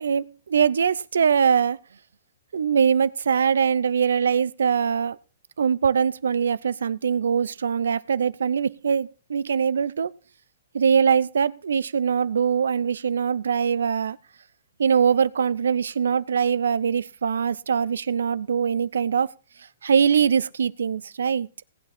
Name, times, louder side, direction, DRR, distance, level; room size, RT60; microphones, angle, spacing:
voice 1, 0.0-1.8 2.5-5.2 5.6-10.1 10.7-14.2 14.8-19.3 19.8-21.5, right 7 dB, 80° right, 0.6 m, -22 dB
18.0 x 8.5 x 4.3 m
hypercardioid pair, 130°, 0 cm